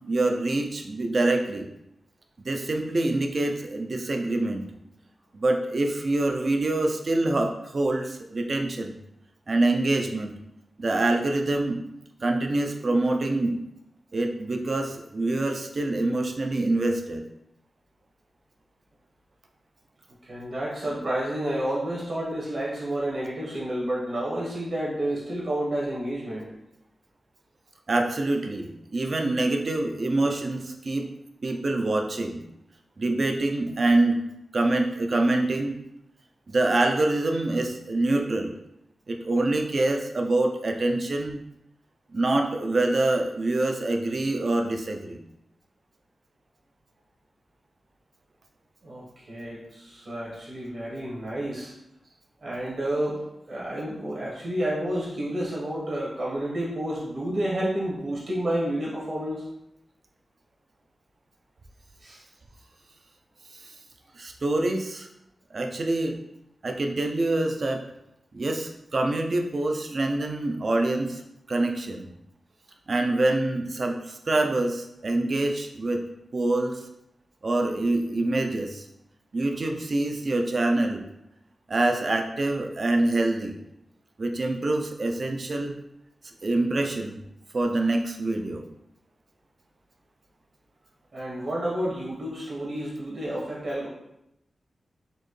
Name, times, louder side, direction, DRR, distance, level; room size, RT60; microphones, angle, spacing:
voice 1, 0.1-1.7 2.4-4.6 5.3-9.0 9.5-10.4 10.8-11.8 12.2-13.6 14.1-17.2 27.9-31.1 31.4-32.4 33.0-34.2 34.5-35.8 36.5-38.5 39.1-41.4 42.1-45.2 63.6-63.7 64.2-65.1 65.5-66.2 66.6-67.8 68.3-71.2 71.5-72.1 72.9-76.0 76.3-76.8 77.4-78.9 79.3-81.0 81.7-83.5 84.2-85.8 86.4-87.2 87.5-88.6, right 2 dB, 40° right, 4 dB, 0.4 m, -25 dB
voice 2, 20.2-26.5 48.8-51.7 52.4-59.4 62.0-62.2 91.1-93.9, right 1 dB, 60° right, -5 dB, 1.3 m, -30 dB
4.2 x 2.7 x 3.1 m, 0.83 s
wide cardioid pair, 165°, 0 cm